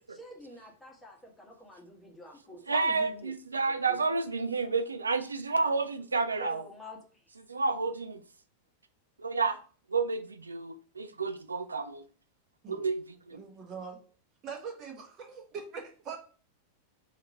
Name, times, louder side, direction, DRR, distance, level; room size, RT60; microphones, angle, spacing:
voice 1, 0.1-4.3 6.3-7.3, left 1 dB, 10° left, 1.0 m, -48 dB
voice 2, 2.7-6.6 7.5-8.2 9.2-9.6 9.9-12.1 12.7-13.4, right 4 dB, 75° right, 0.3 m, -30 dB
voice 3, 13.3-14.0 14.4-16.2, right 5 dB, 35° right, 0.9 m, -42 dB
2.8 x 2.5 x 4.0 m
figure-of-eight pair, 90°, 0 cm